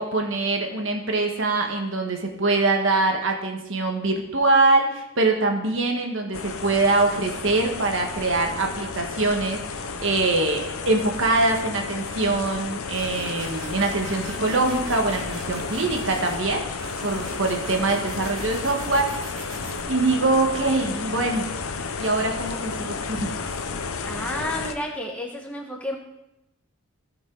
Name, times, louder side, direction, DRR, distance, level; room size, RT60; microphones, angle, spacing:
voice 1, 0.0-21.5 22.0-23.5, right 2 dB, 60° right, 3 dB, 1.4 m, -24 dB
sound 1, 6.3-24.7, left 4 dB, 75° left, 0.7 m, -32 dB
sound 2, 12.9-16.4 16.8-19.8, right 2 dB, 80° right, 1.8 m, -40 dB
voice 2, 24.0-26.0, left 1 dB, 5° left, 0 dB, 1.2 m, -31 dB
16.0 x 5.4 x 3.9 m, 0.87 s
head